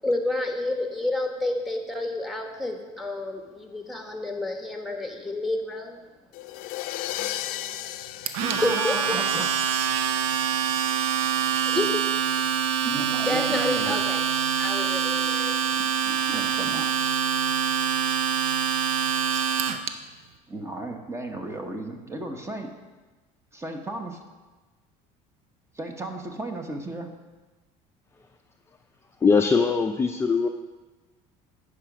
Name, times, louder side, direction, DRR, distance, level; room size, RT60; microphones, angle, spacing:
voice 1, 0.0-6.0 8.2-9.5 11.2-11.4 11.6-12.2 12.5-12.6 13.3-14.2 14.6-15.5 16.3-16.5, left 2 dB, ahead, 3 dB, 1.4 m, -30 dB
sound 1, 6.3-9.6, left 14 dB, 70° left, 0.5 m, -34 dB
Domestic sounds home sounds, 8.3-19.9, right 8 dB, 90° right, 0.6 m, -25 dB
voice 2, 8.4-9.5 12.8-14.0 16.0-16.9 20.5-22.7 23.5-24.2 25.7-27.1, right 2 dB, 20° right, 4 dB, 1.1 m, -34 dB
voice 3, 29.2-30.5, left 5 dB, 15° left, 4 dB, 0.5 m, -21 dB
10.0 x 5.0 x 6.1 m, 1.2 s
supercardioid pair, 105°, 15 cm